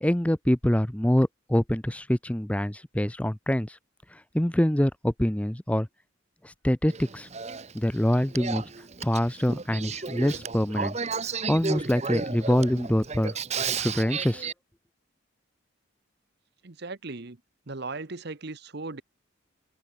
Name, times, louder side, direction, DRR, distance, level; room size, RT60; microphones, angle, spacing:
voice 1, 0.0-3.8 4.1-5.9 6.4-7.3 7.7-8.6 9.0-11.0 11.5-13.3 13.8-14.5, equal, 5° left, 0.6 m, -25 dB
Male speech man speaking / Female speech woman speaking / Conversation, 6.9-14.5, right 5 dB, 30° right, 1.0 m, -33 dB
voice 2, 16.6-17.4 17.7-19.0, right 3 dB, 50° right, 1.1 m, -37 dB
open air
head